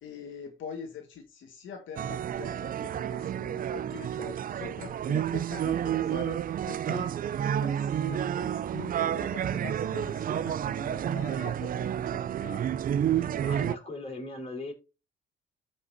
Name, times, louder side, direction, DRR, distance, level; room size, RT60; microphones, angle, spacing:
voice 1, 0.0-4.1 4.5-7.2 7.5-12.8, left 6 dB, 75° left, 1.6 m, -44 dB
sound 1, 2.0-13.8, right 9 dB, 45° right, 0.4 m, -30 dB
voice 2, 13.0-14.7, left 2 dB, 30° left, 4.8 m, -39 dB
14.0 x 5.3 x 2.7 m
cardioid pair, 90°, 20 cm